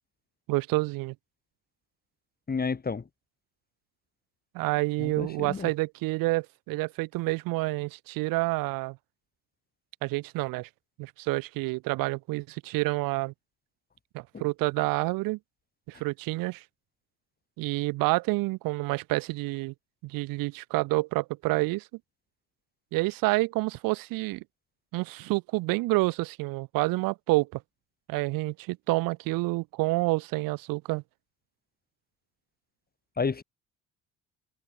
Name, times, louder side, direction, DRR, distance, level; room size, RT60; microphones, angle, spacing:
voice 1, 0.5-1.2 4.5-9.0 10.0-10.7 11.0-13.3 14.1-15.4 15.9-16.6 17.6-19.7 20.0-21.9 22.9-24.4 24.9-27.6 28.1-31.0, right 22 dB, 85° right, 3.6 m, -28 dB
voice 2, 2.5-3.0 5.0-5.7 33.2-33.4, left 5 dB, 30° left, 2.0 m, -30 dB
supercardioid pair, 80°, 33 cm